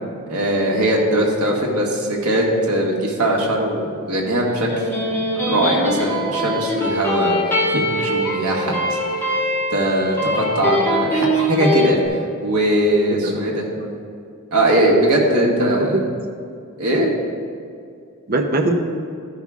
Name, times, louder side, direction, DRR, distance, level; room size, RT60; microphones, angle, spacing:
voice 1, 0.3-4.7 5.4-7.4 7.7-9.0 9.7-12.0 12.4-13.6 14.5-16.0 16.8-17.1, right 1 dB, 80° right, -2 dB, 1.6 m, -20 dB
Electric guitar, 4.5-11.9, equal, 10° left, 1.9 m, -22 dB
voice 2, 13.1-14.0 15.3-16.0 18.3-18.8, right 1 dB, 40° right, 3 dB, 0.8 m, -22 dB
13.5 x 5.6 x 3.6 m, 2.3 s
head